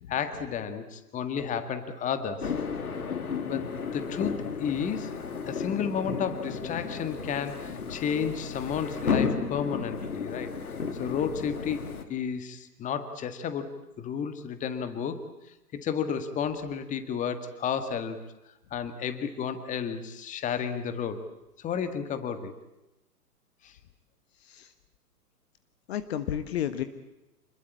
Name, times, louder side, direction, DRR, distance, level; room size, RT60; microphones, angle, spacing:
voice 1, 0.1-2.5 3.4-5.1 5.5-10.5 11.0-11.8 12.1-13.7 14.0-15.2 15.7-18.2 18.7-21.2 21.6-22.5 23.6-23.7, left 7 dB, 15° left, 10 dB, 1.8 m, -32 dB
sound 1, 2.4-12.0, left 5 dB, 65° left, 2.9 m, -33 dB
voice 2, 25.9-26.8, left 10 dB, 40° left, 10 dB, 1.5 m, -32 dB
27.5 x 21.5 x 8.6 m, 0.96 s
figure-of-eight pair, 115°, 47 cm